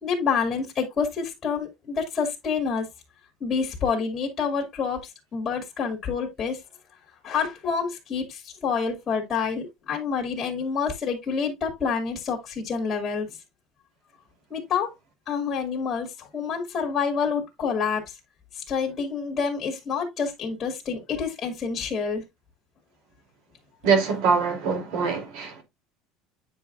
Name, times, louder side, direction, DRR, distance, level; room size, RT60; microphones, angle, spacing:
voice 1, 0.0-2.9 3.4-5.0 5.3-6.6 7.2-13.3 14.5-14.9 15.3-18.0 18.5-22.2, left 6 dB, 25° left, 2.2 m, -28 dB
voice 2, 23.8-25.6, right 5 dB, 70° right, 3.0 m, -23 dB
9.4 x 5.5 x 2.5 m
cardioid pair, 165°, 0 cm